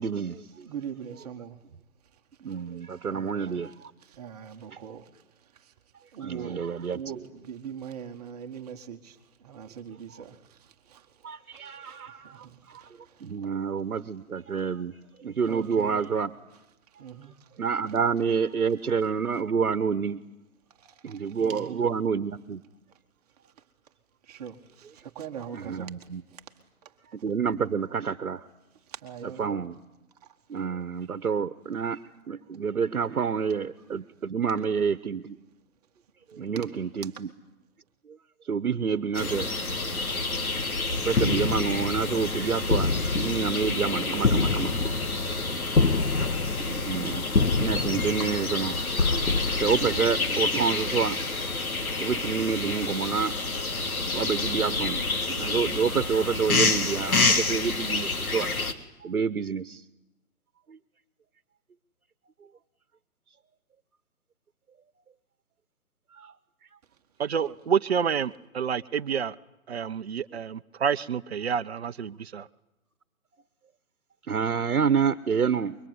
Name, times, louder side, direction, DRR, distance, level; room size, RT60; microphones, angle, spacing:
voice 1, 0.0-0.4 2.4-3.7 6.2-7.0 11.2-12.9 13.2-14.9 15.2-16.3 17.6-20.2 21.0-22.6 25.5-26.2 27.2-28.4 29.4-29.7 30.5-32.0 32.3-35.4 36.3-37.3 38.5-39.5 41.0-46.3 46.7-48.7 49.1-49.3 49.5-51.2 52.0-53.4 54.1-55.0 55.4-58.5 59.0-59.8 60.7-60.8 66.2-66.3 74.3-75.7, right 6 dB, 70° right, 12 dB, 1.3 m, -28 dB
voice 2, 0.6-1.6 2.5-2.6 3.1-3.6 4.0-5.2 5.5-5.7 6.1-6.6 6.9-11.3 11.5-13.5 15.5-16.0 17.0-17.5 20.8-21.8 24.2-26.4 26.8-26.9 28.9-29.6 30.2-30.3 36.3-36.7 37.2-37.3 67.4-67.6, right 8 dB, 25° right, 5 dB, 1.8 m, -42 dB
sound 1, 39.1-58.7, left 3 dB, 70° left, 3.2 m, -29 dB
sound 2, 41.1-50.6, left 3 dB, 85° left, 1.8 m, -28 dB
voice 3, 67.2-69.4 69.7-72.5, right 7 dB, 45° right, 12 dB, 0.9 m, -28 dB
25.0 x 23.0 x 9.7 m, 0.93 s
hypercardioid pair, 155°, 44 cm